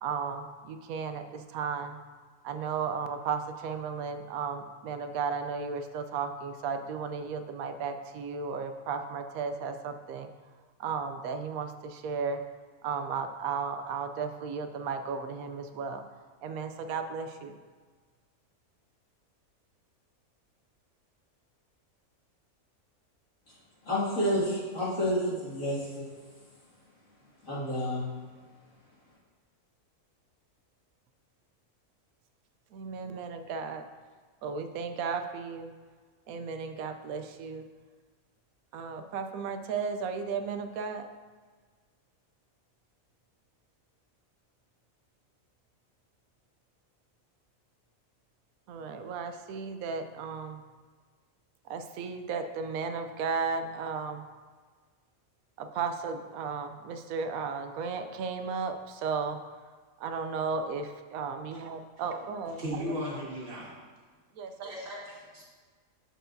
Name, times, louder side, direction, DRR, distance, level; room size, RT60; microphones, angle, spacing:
voice 1, 0.0-2.0 2.4-10.3 10.8-12.4 12.8-16.0 16.4-17.6 32.7-33.9 34.4-35.7 36.3-37.7 38.7-41.1 48.7-50.6 51.7-54.3 55.6-59.4 60.0-62.9 64.4-64.7, right 5 dB, 85° right, 8 dB, 1.0 m, -34 dB
voice 2, 23.8-26.0 27.5-28.1, equal, 65° left, -8 dB, 2.6 m, -29 dB
voice 3, 62.6-63.7 64.6-65.4, equal, 50° right, -6 dB, 2.0 m, -37 dB
12.5 x 4.6 x 2.6 m, 1.5 s
omnidirectional pair, 1.5 m